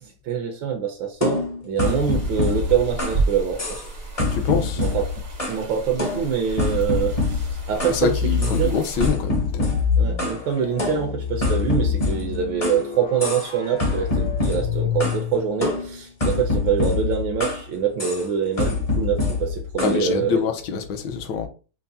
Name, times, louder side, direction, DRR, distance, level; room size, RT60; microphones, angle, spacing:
voice 1, 0.0-3.8 4.8-5.0 5.5-8.7 10.0-20.5, right 7 dB, 75° right, 1.3 m, -25 dB
sound 1, 1.2-3.3 3.6-3.9 4.2-5.7 6.0-8.0 8.4-8.6 9.0-10.4 10.8-12.8 13.2-13.5 13.8-15.2 15.6-17.7 18.0-18.3 18.6-20.0, left 3 dB, 35° left, 0.6 m, -25 dB
sound 2, 1.8-9.1, right 3 dB, 40° right, 0.6 m, -32 dB
voice 2, 4.3-4.8 7.9-9.7 19.8-21.5, left 7 dB, 70° left, 1.2 m, -25 dB
sound 3, 7.8-8.8 9.6-15.6, left 5 dB, 85° left, 3.1 m, -27 dB
5.7 x 2.1 x 2.6 m
omnidirectional pair, 2.2 m